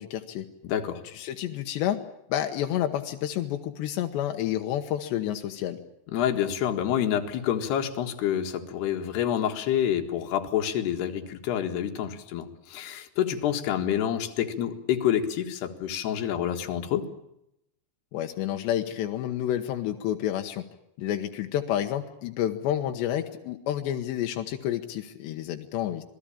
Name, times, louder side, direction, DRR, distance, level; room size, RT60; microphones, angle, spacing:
voice 1, 0.0-0.5 1.1-2.0 2.3-5.8 18.1-20.7 21.0-26.0, left 11 dB, 90° left, 5 dB, 3.4 m, -29 dB
voice 2, 0.6-1.0 6.1-17.0, left 10 dB, 75° left, 5 dB, 3.9 m, -28 dB
27.0 x 19.5 x 8.8 m, 0.81 s
omnidirectional pair, 4.8 m